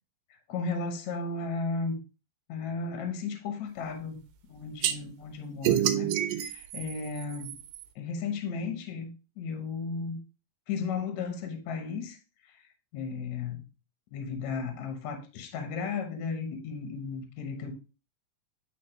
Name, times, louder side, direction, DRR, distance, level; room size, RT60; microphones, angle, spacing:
voice 1, 0.5-2.0 2.5-4.2 4.5-7.6 8.0-10.2 10.7-12.2 12.9-13.6 14.1-17.7, left 4 dB, 65° left, 2.1 m, -34 dB
sound 1, 4.8-4.9 5.6-7.8, right 11 dB, 80° right, 2.2 m, -28 dB
8.6 x 4.2 x 3.2 m
omnidirectional pair, 4.2 m